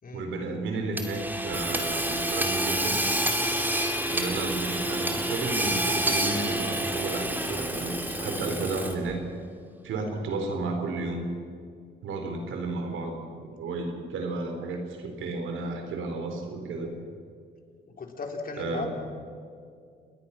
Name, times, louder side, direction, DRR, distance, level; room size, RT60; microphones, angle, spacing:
voice 1, 0.1-3.0 4.1-9.2 9.8-11.3 12.0-17.0 18.6-18.9, right 3 dB, 80° right, 4 dB, 4.2 m, -33 dB
Hammer / Sawing, 1.0-9.1, right 1 dB, 10° right, 2.4 m, -28 dB
voice 2, 18.0-18.9, left 4 dB, 45° left, 2 dB, 4.1 m, -36 dB
29.5 x 20.0 x 6.0 m, 2.2 s
cardioid pair, 90°, 20 cm